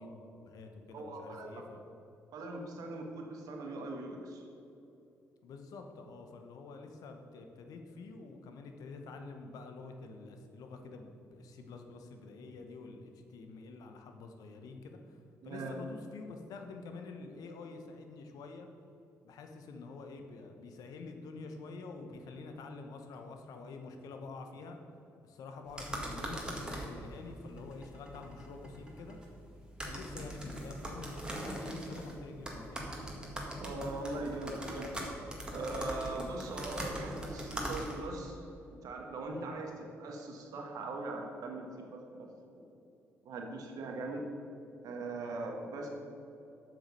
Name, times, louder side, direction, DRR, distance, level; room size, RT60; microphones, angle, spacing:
voice 1, 0.0-1.8 5.4-15.2 15.4-18.7 19.2-24.8 25.2-29.2 29.8-32.8 39.3-39.4 45.2-45.3, left 3 dB, 75° left, 5 dB, 0.9 m, -47 dB
voice 2, 0.9-1.7 2.3-4.4 15.4-15.7 33.6-35.0 35.5-38.5 38.8-42.7 43.2-44.3 44.8-45.9, right 2 dB, 70° right, 2 dB, 1.4 m, -41 dB
sound 1, 25.7-38.2, right 1 dB, 15° right, 1.9 m, -42 dB
7.2 x 6.2 x 5.4 m, 2.8 s
supercardioid pair, 60°, 6 cm